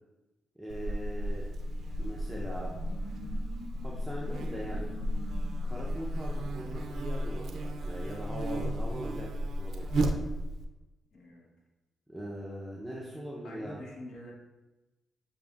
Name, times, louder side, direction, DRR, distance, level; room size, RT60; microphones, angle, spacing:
voice 1, 0.6-1.5 2.0-2.7 3.8-4.9 5.6-9.3 9.6-10.1 12.1-13.8, equal, ahead, -6 dB, 0.6 m, -41 dB
Buzz, 0.7-10.7, right 1 dB, 65° right, 0.4 m, -34 dB
sound 1, 1.2-7.5, left 1 dB, 40° left, 1.1 m, -48 dB
voice 2, 11.1-11.5 13.4-14.3, left 1 dB, 75° left, -3 dB, 1.1 m, -45 dB
6.8 x 2.6 x 2.4 m, 1.1 s
cardioid pair, 80°, 0 cm